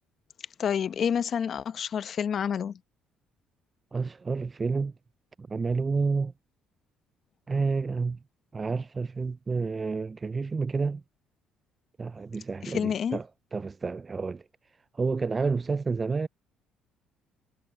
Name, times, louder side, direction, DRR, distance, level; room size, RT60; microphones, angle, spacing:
voice 1, 0.6-2.8 12.6-13.2, left 7 dB, 50° left, 0.7 m, -28 dB
voice 2, 3.9-4.9 5.4-6.3 7.5-8.2 8.5-11.0 12.0-14.4 14.9-16.3, right 4 dB, 30° right, 0.3 m, -29 dB
supercardioid pair, 75°, 0 cm